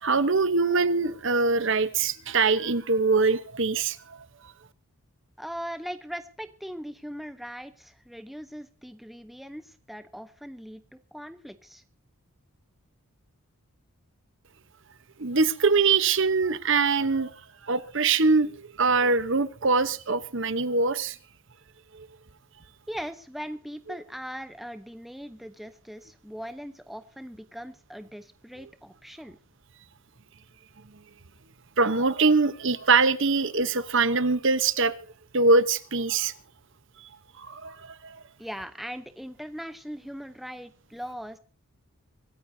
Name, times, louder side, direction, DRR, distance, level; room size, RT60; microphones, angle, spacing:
voice 1, 0.0-4.3 15.2-21.2 21.9-22.1 31.8-35.0 35.3-36.3 37.0-37.1 37.4-38.2, right 4 dB, 55° right, 1.0 m, -23 dB
voice 2, 5.4-11.8 22.9-29.4 38.4-41.4, equal, ahead, 0.9 m, -40 dB
25.5 x 14.0 x 2.8 m
head